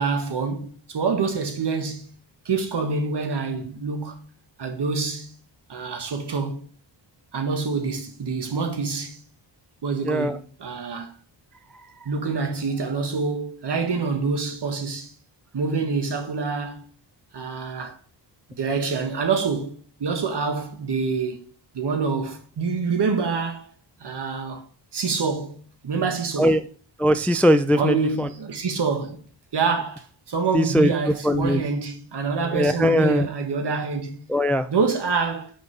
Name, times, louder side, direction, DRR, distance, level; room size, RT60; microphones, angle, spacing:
voice 1, 0.0-2.1 2.4-4.2 4.6-5.3 5.7-6.6 7.3-9.2 9.8-11.1 12.0-15.1 15.5-16.9 17.3-18.0 18.5-21.5 21.7-23.7 24.0-24.7 24.9-25.6 25.8-26.7 27.7-29.3 29.5-34.2 34.7-35.5, right 4 dB, 60° right, 1.6 m, -26 dB
voice 2, 10.0-10.4 26.4-26.6 27.0-28.3 30.5-30.9 31.2-31.7 32.5-33.3 34.3-34.7, equal, 5° left, 0.3 m, -20 dB
6.1 x 5.3 x 5.3 m
wide cardioid pair, 95°, 46 cm